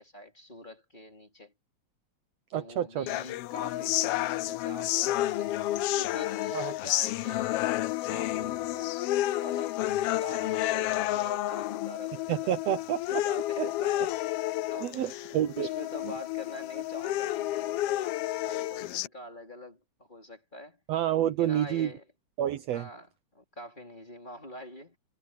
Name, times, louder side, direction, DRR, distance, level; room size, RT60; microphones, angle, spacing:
voice 1, 0.0-1.5 2.5-5.6 5.9-7.7 8.1-8.9 9.2-9.8 10.2-14.1 14.7-15.2 15.5-20.8 21.2-22.0 22.7-25.0, left 1 dB, 15° left, 3.2 m, -45 dB
voice 2, 2.5-3.1 6.5-6.8 12.3-13.2 13.6-13.7 14.8-15.7 20.9-21.9 22.4-22.9, right 11 dB, 70° right, 1.8 m, -29 dB
sound 1, 3.1-19.1, left 15 dB, 85° left, 1.3 m, -30 dB
omnidirectional pair, 3.3 m